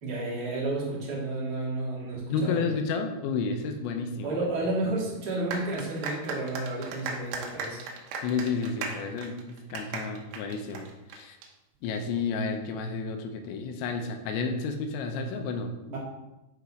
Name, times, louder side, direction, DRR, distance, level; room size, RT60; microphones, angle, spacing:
voice 1, 0.0-2.7 4.2-7.8 15.9-16.0, right 2 dB, 50° right, -6 dB, 1.1 m, -31 dB
voice 2, 2.3-4.4 4.9-5.0 8.2-11.4 11.8-15.7, left 4 dB, 80° left, 5 dB, 2.8 m, -31 dB
sound 1, 5.5-11.5, right 4 dB, 80° right, 3.5 m, -37 dB
11.0 x 4.1 x 4.8 m, 1.0 s
omnidirectional pair, 5.8 m